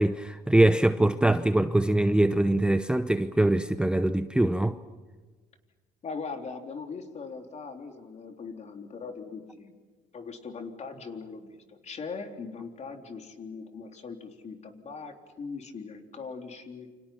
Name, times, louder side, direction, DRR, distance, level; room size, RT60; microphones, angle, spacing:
voice 1, 0.0-4.8, right 1 dB, 5° right, 0.8 m, -23 dB
voice 2, 6.0-9.8 10.1-16.9, left 4 dB, 40° left, 3.7 m, -40 dB
29.0 x 27.0 x 5.9 m
cardioid pair, 110°, 17 cm